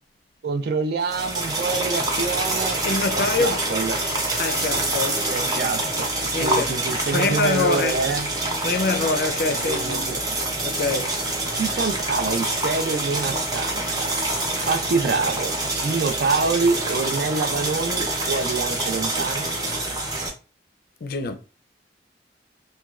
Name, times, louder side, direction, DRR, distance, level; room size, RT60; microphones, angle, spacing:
voice 1, 0.4-4.0 5.3-6.1 6.3-8.3 9.5-10.2 11.6-14.1 14.7-19.6, right 4 dB, 60° right, 0.4 m, -26 dB
sound 1, 1.0-20.3, right 2 dB, 20° right, 0.6 m, -26 dB
voice 2, 2.8-3.6 4.4-5.7 6.3-6.7 7.1-7.9 8.6-10.1 10.6-11.2 21.0-21.3, left 3 dB, 55° left, 0.4 m, -25 dB
3.0 x 2.2 x 2.3 m
head